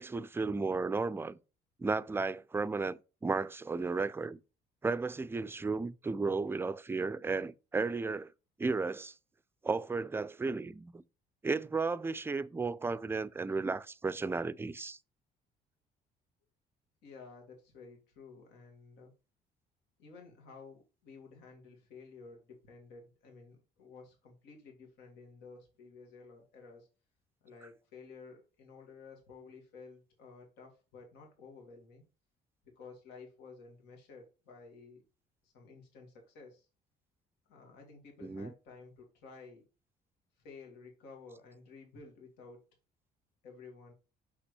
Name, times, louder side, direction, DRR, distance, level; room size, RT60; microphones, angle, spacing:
voice 1, 0.0-1.4 1.8-4.4 4.8-8.3 8.6-9.1 9.6-11.0 11.4-15.0 38.2-38.5, right 4 dB, 15° right, 0.4 m, -34 dB
voice 2, 17.0-19.1 20.0-26.9 27.4-32.0 32.8-35.0 35.4-36.7 37.5-39.6 40.4-42.6 43.4-43.9, left 4 dB, 90° left, 2.2 m, -53 dB
6.0 x 5.8 x 3.2 m
cardioid pair, 110°, 17 cm